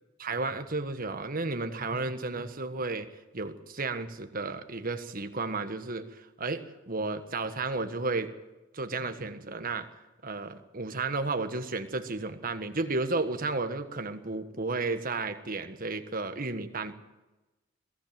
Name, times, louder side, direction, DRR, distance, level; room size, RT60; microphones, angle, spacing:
voice 1, 0.2-3.1 3.3-8.3 8.7-9.9 10.2-16.9, right 3 dB, 45° right, 9 dB, 1.5 m, -33 dB
22.5 x 15.0 x 7.7 m, 1.1 s
head